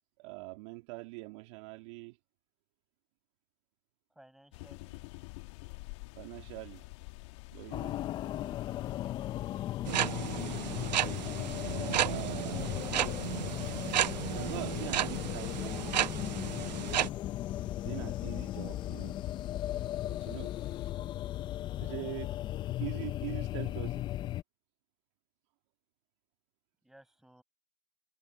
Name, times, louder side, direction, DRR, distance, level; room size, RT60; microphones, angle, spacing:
voice 1, 0.2-2.2 6.2-6.9 7.5-8.0 12.0-12.8 13.5-13.7 14.1-15.9 17.8-19.2 20.1-20.5 21.8-22.3 22.8-24.0, right 26 dB, 45° right, 2.1 m, -43 dB
voice 2, 4.1-5.1 26.8-27.4, right 1 dB, ahead, 6.7 m, -59 dB
sound 1, 4.5-20.9, left 25 dB, 45° left, 1.9 m, -50 dB
sound 2, 7.7-24.4, left 13 dB, 20° left, 0.7 m, -37 dB
sound 3, 9.8-17.1, right 12 dB, 80° right, 0.5 m, -33 dB
hypercardioid pair, 135°, 21 cm